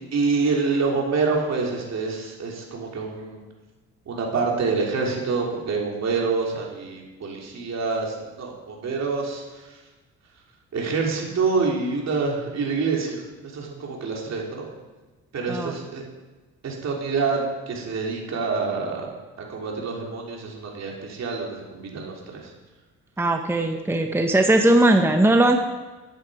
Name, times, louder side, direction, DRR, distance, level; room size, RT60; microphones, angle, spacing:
voice 1, 0.1-3.4 4.0-9.8 10.7-13.2 13.5-14.7 15.3-16.0 16.6-19.1 19.4-22.5, right 4 dB, 60° right, -1 dB, 3.3 m, -26 dB
voice 2, 23.2-25.6, right 1 dB, 10° right, 4 dB, 0.9 m, -19 dB
12.0 x 9.6 x 5.1 m, 1.2 s
cardioid pair, 90°, 30 cm